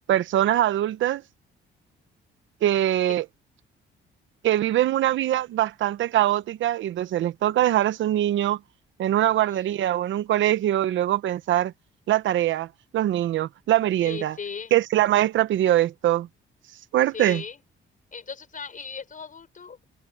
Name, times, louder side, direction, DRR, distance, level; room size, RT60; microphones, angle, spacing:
voice 1, 0.1-1.2 2.6-3.2 4.4-8.6 9.0-11.7 12.1-12.7 12.9-14.4 14.7-16.3 16.9-17.4, right 13 dB, 75° right, 0.9 m, -22 dB
voice 2, 9.3-9.8 14.0-14.7 17.1-17.6 18.1-19.8, left 6 dB, 40° left, 5.5 m, -38 dB
cardioid pair, 90°, 20 cm